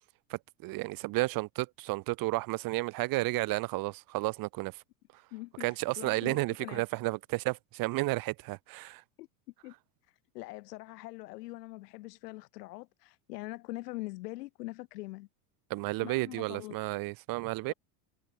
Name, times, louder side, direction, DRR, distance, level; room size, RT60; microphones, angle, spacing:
voice 1, 0.3-4.7 5.6-9.0 15.7-17.7, right 22 dB, 45° right, 2.1 m, -32 dB
voice 2, 5.3-6.8 9.2-9.3 9.6-9.7 10.3-15.3 16.0-16.8 17.7-17.8, left 20 dB, 75° left, 5.3 m, -43 dB
supercardioid pair, 150°, 47 cm